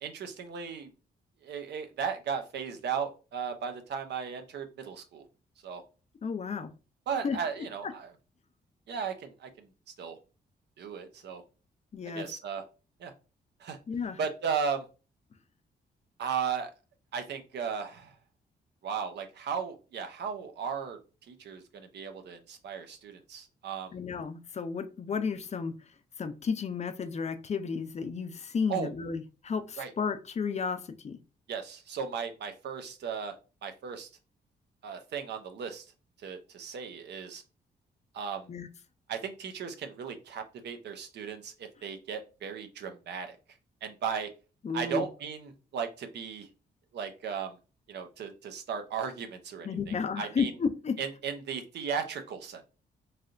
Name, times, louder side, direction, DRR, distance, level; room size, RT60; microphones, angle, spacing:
voice 1, 0.0-0.9 1.4-5.3 5.6-5.8 7.1-8.1 8.9-9.7 10.0-10.2 10.8-11.4 12.1-12.6 13.0-13.1 13.6-13.8 14.2-14.8 16.2-16.7 17.1-18.1 18.8-21.0 21.3-23.9 28.7-28.9 29.8-29.9 31.5-33.3 33.6-34.1 34.8-35.8 36.2-37.4 38.1-38.5 39.1-43.4 43.8-44.3 44.7-46.5 46.9-47.6 47.9-50.5 51.0-52.7, right 6 dB, 70° right, 7 dB, 0.6 m, -36 dB
voice 2, 6.2-6.7 7.2-7.4 11.9-12.2 13.9-14.2 23.9-25.7 26.2-31.2 38.5-38.7 44.6-45.0 49.6-50.9, left 5 dB, 40° left, 10 dB, 0.4 m, -32 dB
3.2 x 2.7 x 2.5 m, 0.32 s
cardioid pair, 70°, 18 cm